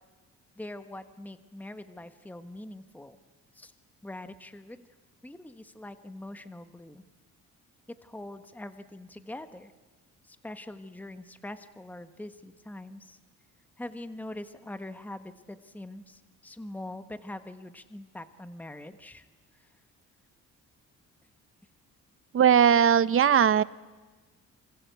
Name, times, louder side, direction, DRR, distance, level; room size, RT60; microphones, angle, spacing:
voice 1, 0.6-3.2 3.5-3.7 4.0-4.9 5.2-7.0 7.9-9.7 10.2-13.2 13.8-19.2, left 1 dB, 5° left, 9 dB, 1.3 m, -43 dB
voice 2, 22.3-23.6, right 8 dB, 45° right, 17 dB, 0.8 m, -19 dB
27.5 x 26.0 x 8.2 m, 1.3 s
cardioid pair, 90°, 30 cm